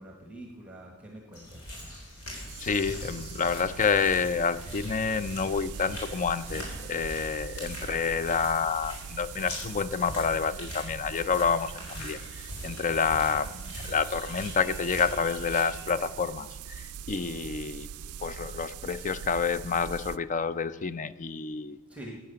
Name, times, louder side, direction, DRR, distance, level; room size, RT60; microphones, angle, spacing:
voice 1, 0.0-1.7 7.8-7.9 21.9-22.2, right 1 dB, 5° right, 1 dB, 1.2 m, -45 dB
sound 1, 1.3-15.9, equal, 75° left, 4.0 m, -42 dB
sound 2, 2.5-20.2, right 8 dB, 75° right, 0.3 m, -42 dB
voice 2, 2.6-12.2 12.6-17.9 18.2-21.8, left 5 dB, 35° left, 15 dB, 0.4 m, -28 dB
10.5 x 8.7 x 6.8 m, 1.3 s
head